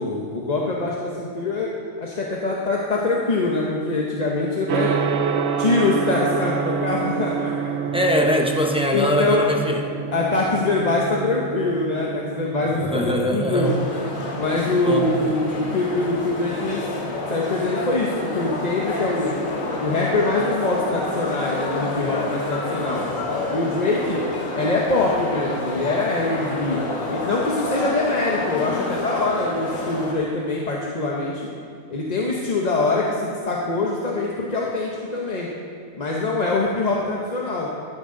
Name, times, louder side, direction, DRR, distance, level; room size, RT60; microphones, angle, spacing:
voice 1, 0.0-1.7 2.0-4.9 5.6-7.7 8.9-9.4 10.1-13.7 14.4-16.8 17.3-19.3 19.8-23.0 23.5-24.2 24.5-26.8 27.1-31.5 31.9-35.5 36.0-37.7, left 2 dB, 35° left, -3 dB, 1.0 m, -23 dB
Gong, 4.7-23.6, right 6 dB, 60° right, 0.9 m, -30 dB
voice 2, 7.9-9.8 12.6-13.8 14.8-15.1, equal, 5° right, 1 dB, 0.7 m, -22 dB
sound 1, 13.6-30.1, left 2 dB, 75° left, 1.8 m, -29 dB
13.5 x 11.0 x 3.9 m, 2.3 s
omnidirectional pair, 1.4 m